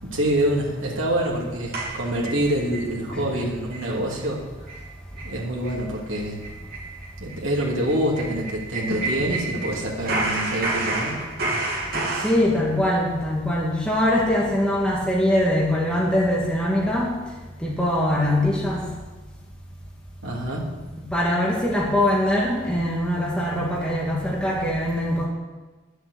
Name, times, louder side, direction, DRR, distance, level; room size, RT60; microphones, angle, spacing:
voice 1, 0.0-4.4 5.2-6.4 7.2-11.2 11.5-11.9 20.2-20.7, right 1 dB, 75° right, -3 dB, 2.9 m, -26 dB
sound 1, 1.7-2.9 3.2-3.3 3.7-3.9 4.2-4.3 4.7-4.8 5.2-5.3 5.6-5.8 6.1-9.8 10.0-12.4, right 2 dB, 45° right, 3.0 m, -29 dB
voice 2, 12.2-17.1 17.6-18.8 21.0-25.3, left 1 dB, 5° left, -5 dB, 2.0 m, -22 dB
10.5 x 8.0 x 8.5 m, 1.2 s
head